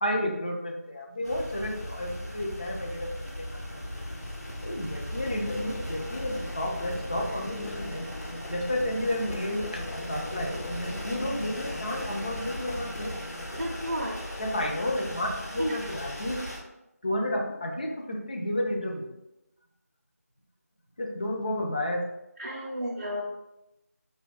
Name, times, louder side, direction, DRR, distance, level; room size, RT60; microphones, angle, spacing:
voice 1, 0.0-3.1 3.7-3.8 4.6-8.1 8.5-13.1 14.4-16.4 17.0-19.1 21.0-22.0, left 1 dB, 30° left, 1 dB, 0.4 m, -31 dB
sound 1, 1.2-16.6, left 1 dB, 75° left, 0.9 m, -37 dB
voice 2, 13.5-14.3 15.6-16.0 22.4-23.2, equal, 45° right, -3 dB, 0.5 m, -32 dB
3.0 x 2.3 x 3.7 m, 0.90 s
figure-of-eight pair, 165°, 9 cm